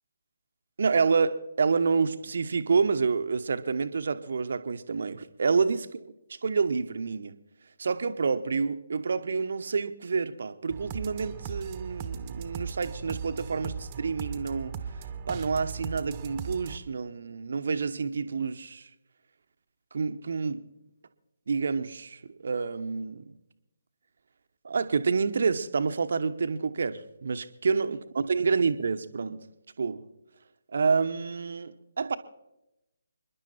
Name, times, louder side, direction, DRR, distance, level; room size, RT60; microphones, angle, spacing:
voice 1, 0.8-5.9 6.3-7.3 7.8-14.8 15.3-18.9 19.9-20.7 21.5-23.4 24.6-29.5 29.8-30.1 30.7-32.2, right 5 dB, 55° right, 1.1 m, -28 dB
sound 1, 10.7-16.8, right 6 dB, 25° right, 1.3 m, -38 dB
29.0 x 11.0 x 4.3 m
figure-of-eight pair, 145°, 0 cm